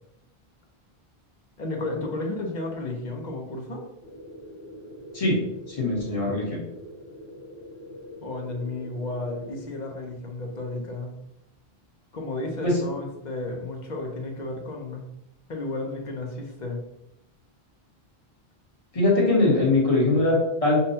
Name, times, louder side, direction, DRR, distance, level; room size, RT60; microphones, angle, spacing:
voice 1, 1.6-3.9 8.2-11.1 12.1-15.1 15.5-16.8, left 2 dB, 50° left, 1 dB, 0.8 m, -33 dB
sound 1, 4.0-9.6, equal, 75° left, 1.2 m, -43 dB
voice 2, 5.7-6.6 12.6-12.8 18.9-20.8, left 2 dB, 35° left, -4 dB, 1.2 m, -21 dB
5.4 x 2.2 x 2.7 m, 0.85 s
omnidirectional pair, 1.0 m